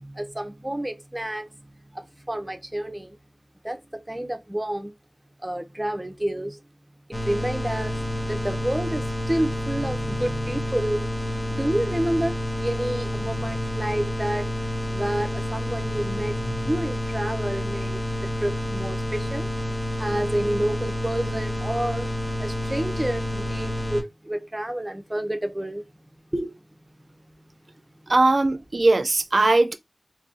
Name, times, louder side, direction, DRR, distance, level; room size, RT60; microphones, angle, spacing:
voice 1, 0.0-1.5 1.9-3.2 3.6-4.9 5.4-6.6 7.1-14.5 14.9-19.5 20.0-22.1 22.4-25.9 26.3-26.6 27.0-27.1, right 1 dB, 20° right, 0.6 m, -29 dB
sound 1, 7.1-24.0, left 1 dB, 35° left, 0.9 m, -29 dB
voice 2, 28.1-29.7, right 2 dB, 65° right, 0.5 m, -19 dB
3.9 x 2.7 x 2.5 m
wide cardioid pair, 50°, 0 cm